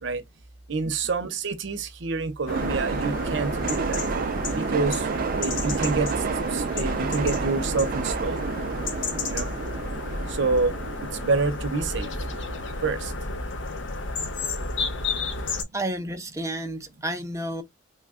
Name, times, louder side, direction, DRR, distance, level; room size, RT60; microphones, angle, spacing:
voice 1, 0.7-4.0 4.6-5.1 5.3-6.1 6.5-8.5 9.3-9.5 10.3-10.7 11.0-12.1 12.8-13.1, right 3 dB, 75° right, 0.7 m, -27 dB
sound 1, 2.5-15.6, left 3 dB, 85° left, 0.8 m, -32 dB
sound 2, 2.5-13.1, right 5 dB, 50° right, 0.3 m, -31 dB
voice 2, 15.7-17.6, right 1 dB, 15° right, 0.6 m, -31 dB
3.2 x 2.2 x 3.5 m
head